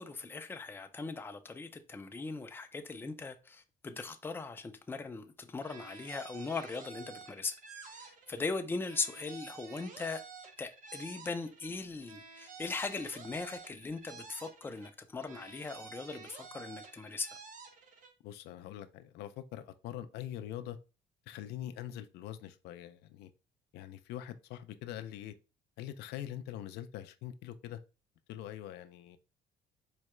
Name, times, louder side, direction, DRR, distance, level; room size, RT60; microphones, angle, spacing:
voice 1, 0.0-7.5 7.8-10.2 10.6-17.3, left 4 dB, 15° left, 0.4 m, -39 dB
sound 1, 5.6-8.5 8.8-11.7 12.0-14.9 15.2-18.1, right 5 dB, 50° right, 0.7 m, -51 dB
voice 2, 18.2-20.8 21.3-23.3 23.7-25.3 25.8-27.8 28.3-29.2, left 11 dB, 75° left, 0.4 m, -43 dB
4.6 x 2.1 x 3.0 m
cardioid pair, 110°, 17 cm